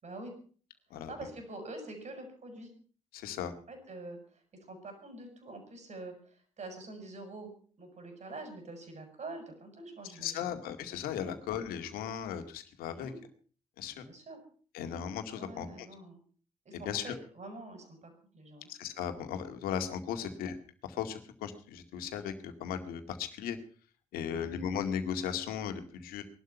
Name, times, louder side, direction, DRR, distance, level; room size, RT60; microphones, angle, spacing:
voice 1, 0.0-0.3 1.1-2.7 3.7-4.4 4.7-7.5 7.8-10.5 11.2-11.3 12.9-13.2 13.9-14.4 15.3-16.2 16.7-18.7 20.2-20.4 24.3-24.5, right 2 dB, 45° right, 6 dB, 7.1 m, -46 dB
voice 2, 3.1-3.5 10.2-13.1 13.8-14.0 14.7-15.9 16.9-17.1 18.7-20.6 21.0-23.6 24.1-26.2, left 8 dB, 65° left, 8 dB, 2.1 m, -36 dB
20.0 x 12.0 x 5.8 m, 0.44 s
hypercardioid pair, 45°, 16 cm